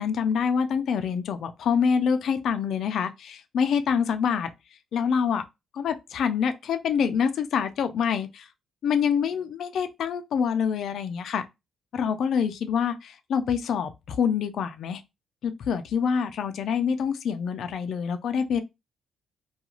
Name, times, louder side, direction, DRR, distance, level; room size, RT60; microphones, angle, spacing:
voice 1, 0.0-4.5 4.9-5.4 5.7-8.5 8.8-11.4 11.9-15.0 15.4-18.6, left 7 dB, 70° left, 0.4 m, -26 dB
2.4 x 2.3 x 3.0 m
cardioid pair, 90°, 0 cm